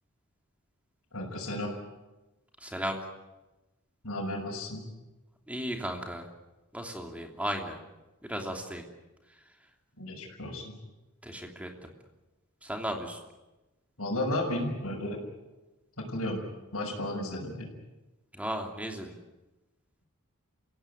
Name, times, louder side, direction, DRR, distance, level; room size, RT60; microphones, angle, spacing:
voice 1, 1.1-1.7 4.0-4.8 10.0-10.8 14.0-15.2 16.0-16.4 16.7-17.7, left 1 dB, 70° left, -2 dB, 6.3 m, -33 dB
voice 2, 2.6-3.0 5.5-6.3 6.7-7.8 8.2-8.8 11.2-11.9 12.6-13.2 18.3-19.2, equal, 5° right, 2 dB, 3.1 m, -35 dB
27.5 x 17.0 x 9.4 m, 1.1 s
head